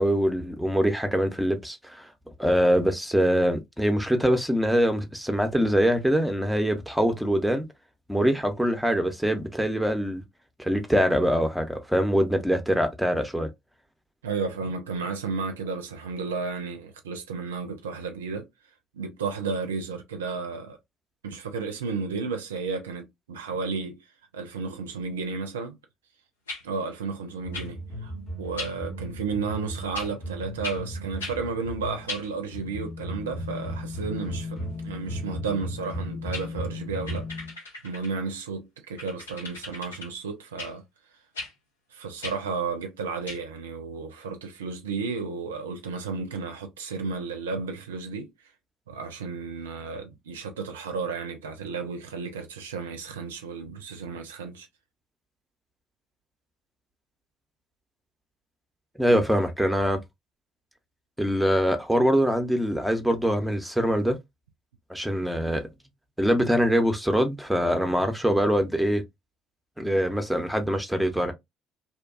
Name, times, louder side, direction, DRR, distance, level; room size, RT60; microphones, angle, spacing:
voice 1, 0.0-2.1 2.4-7.6 8.1-10.2 10.6-13.5 59.0-60.0 61.2-64.2 64.9-65.7 66.2-69.0 69.8-71.3, equal, ahead, 0.7 m, -23 dB
voice 2, 14.2-18.5 18.9-20.8 21.2-24.1 24.3-25.8 26.6-28.1 28.4-37.3 37.8-40.8 41.9-48.3 48.9-54.7 59.1-59.2, right 4 dB, 75° right, 0.4 m, -33 dB
sound 1, 26.5-26.6 27.5-27.7 28.6-28.7 29.9-30.1 30.6-30.8 31.2-31.4 32.1-32.3 35.9-36.0 36.3-36.5 37.1-38.1 39.0-40.1 40.6-40.7 41.3-41.5 42.2-42.4 43.3-43.4, left 3 dB, 80° left, 0.6 m, -37 dB
sound 2, 27.4-37.5, equal, 35° left, 0.9 m, -36 dB
2.7 x 2.2 x 2.3 m
figure-of-eight pair, 50°, 0 cm